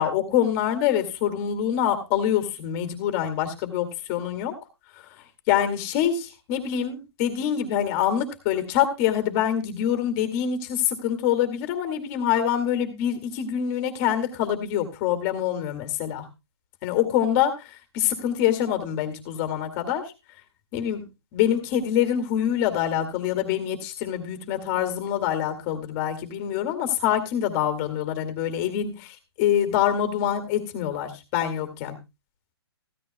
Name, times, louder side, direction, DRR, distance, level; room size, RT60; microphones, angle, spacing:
voice 1, 0.0-4.5 5.5-16.3 16.8-17.5 17.9-20.1 20.7-21.0 21.3-32.0, left 10 dB, 30° left, 8 dB, 2.2 m, -25 dB
15.5 x 13.0 x 2.2 m, 0.24 s
hypercardioid pair, 150°, 14 cm